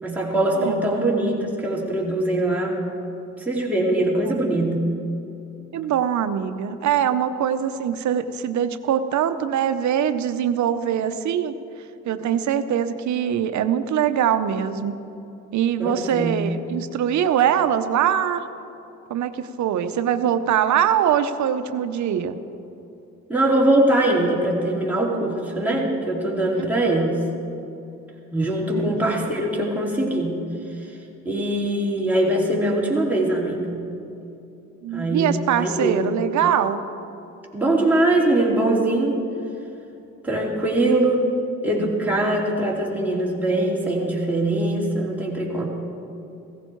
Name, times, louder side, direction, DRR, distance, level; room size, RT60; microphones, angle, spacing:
voice 1, 0.0-2.8 3.4-4.8 15.8-16.4 23.3-27.1 28.3-30.4 31.2-33.8 34.9-36.0 37.5-39.2 40.2-41.2 41.6-45.7, right 1 dB, 5° right, -4 dB, 3.1 m, -22 dB
voice 2, 5.7-11.5 12.1-14.9 15.5-18.4 19.1-22.4 28.7-28.9 34.8-36.8, right 9 dB, 70° right, 10 dB, 0.8 m, -22 dB
17.0 x 14.5 x 4.6 m, 2.8 s
cardioid pair, 90°, 30 cm